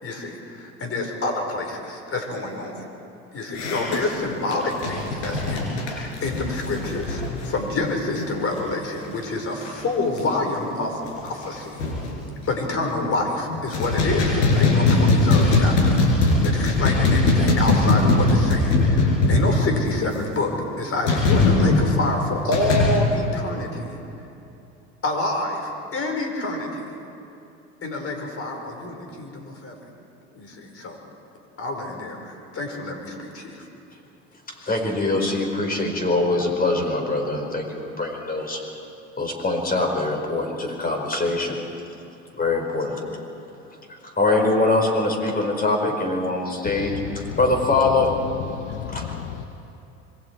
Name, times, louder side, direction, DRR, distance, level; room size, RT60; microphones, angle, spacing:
voice 1, 0.0-2.9 3.3-11.8 12.5-23.9 25.0-26.9 27.8-29.8 30.3-31.0 31.6-33.7, left 2 dB, 40° left, 3 dB, 4.7 m, -27 dB
sound 1, 3.5-8.6 8.9-9.1 9.4-9.8 10.2-10.3 10.7-10.8 11.1-12.1 12.7-13.2 13.5-19.9 21.1-21.8 22.5-23.0, left 2 dB, 85° left, 5.1 m, -20 dB
voice 2, 34.5-38.6 39.2-41.6 42.3-43.0 43.9-48.2 48.9-49.1, left 2 dB, 25° left, 2 dB, 4.9 m, -23 dB
voice 3, 46.6-47.4 48.5-49.5, left 9 dB, 65° left, 6 dB, 1.1 m, -33 dB
26.0 x 22.0 x 4.6 m, 2.8 s
hypercardioid pair, 75°, 34 cm